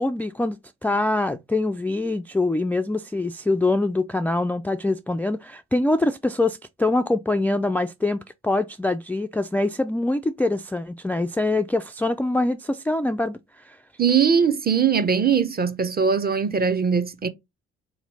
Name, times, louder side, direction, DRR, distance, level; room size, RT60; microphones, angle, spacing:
voice 1, 0.0-13.8, left 2 dB, 5° left, 0.3 m, -24 dB
voice 2, 14.0-17.3, right 6 dB, 30° right, 0.8 m, -21 dB
3.7 x 3.0 x 4.0 m
hypercardioid pair, 45°, 31 cm